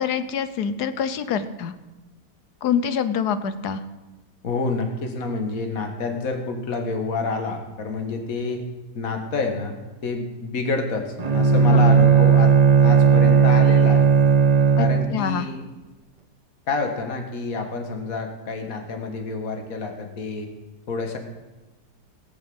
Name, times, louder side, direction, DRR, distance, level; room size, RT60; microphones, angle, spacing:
voice 1, 0.0-1.7 2.6-3.8 11.7-11.8 14.8-15.5, left 7 dB, 70° left, 12 dB, 1.4 m, -25 dB
voice 2, 4.4-8.6 8.9-9.8 10.0-12.5 12.8-14.0 14.8-15.6 16.7-20.5 20.9-21.2, left 3 dB, 55° left, 4 dB, 2.1 m, -28 dB
Bowed string instrument, 11.2-15.3, right 6 dB, 35° right, 0.7 m, -16 dB
19.0 x 7.6 x 7.8 m, 1.1 s
omnidirectional pair, 1.8 m